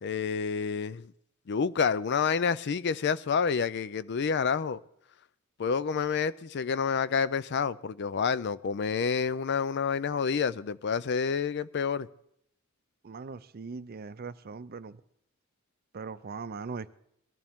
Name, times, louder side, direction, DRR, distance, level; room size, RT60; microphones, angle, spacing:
voice 1, 0.0-1.1 1.5-4.8 5.6-12.1, left 6 dB, 55° left, 0.5 m, -28 dB
voice 2, 13.0-15.0 15.9-16.9, right 4 dB, 45° right, 0.5 m, -40 dB
21.0 x 14.0 x 3.6 m
head